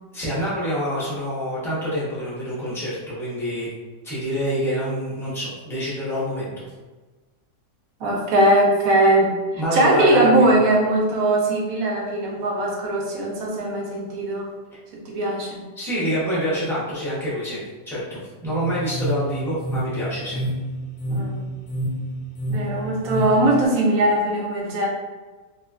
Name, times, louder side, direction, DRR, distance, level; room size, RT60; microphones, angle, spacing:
voice 1, 0.1-3.7 4.0-6.6 9.5-10.5 15.8-20.4, equal, 5° left, -9 dB, 0.5 m, -26 dB
voice 2, 8.0-9.4 9.7-14.5 14.9-15.6 21.1-21.5 22.5-24.9, right 1 dB, 70° right, -2 dB, 0.9 m, -20 dB
sound 1, 18.5-23.7, right 1 dB, 70° left, 1.0 m, -29 dB
3.1 x 2.2 x 2.3 m, 1.3 s
omnidirectional pair, 1.8 m